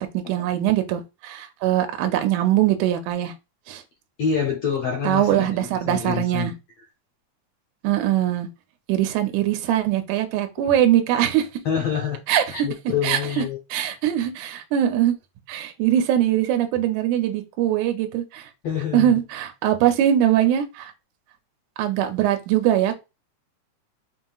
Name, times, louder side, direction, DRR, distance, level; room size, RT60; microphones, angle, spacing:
voice 1, 0.0-3.3 3.7-3.8 5.0-6.5 7.8-8.5 8.9-11.5 12.3-12.7 13.0-13.4 13.7-15.2 15.5-18.5 18.9-20.9 21.8-22.9, right 11 dB, 80° right, 2.0 m, -22 dB
voice 2, 4.2-6.5 11.6-12.2 12.5-13.6 18.6-19.1, left 7 dB, 70° left, 1.5 m, -26 dB
5.6 x 2.8 x 2.3 m
omnidirectional pair, 3.6 m